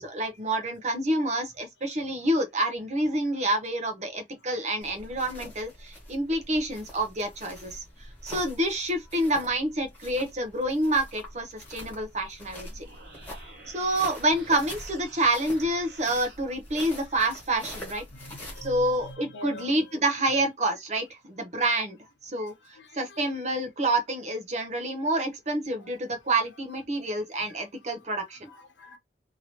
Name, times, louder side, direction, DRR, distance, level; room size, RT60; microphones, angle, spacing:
voice 1, 0.0-7.8 8.2-12.8 13.7-18.0 18.6-22.0 22.2-22.5 22.9-28.5, right 1 dB, 40° right, 0.7 m, -28 dB
sound 1, 4.8-19.1, left 1 dB, 10° left, 1.4 m, -45 dB
sound 2, 12.6-16.4, right 2 dB, 60° right, 1.1 m, -50 dB
voice 2, 18.2-19.9 22.8-23.2 28.5-29.0, equal, 80° left, 1.0 m, -44 dB
2.9 x 2.7 x 2.8 m
head